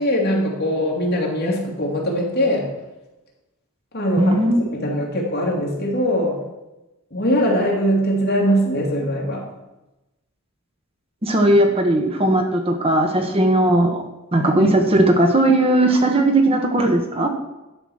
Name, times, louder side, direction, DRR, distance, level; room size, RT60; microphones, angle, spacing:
voice 1, 0.0-2.7 3.9-6.4 7.1-9.4 14.4-14.7, equal, 50° left, -2 dB, 2.6 m, -21 dB
voice 2, 4.2-4.6 11.2-14.0 14.3-17.3, right 1 dB, 30° right, 4 dB, 1.0 m, -17 dB
11.5 x 5.0 x 6.3 m, 1.0 s
head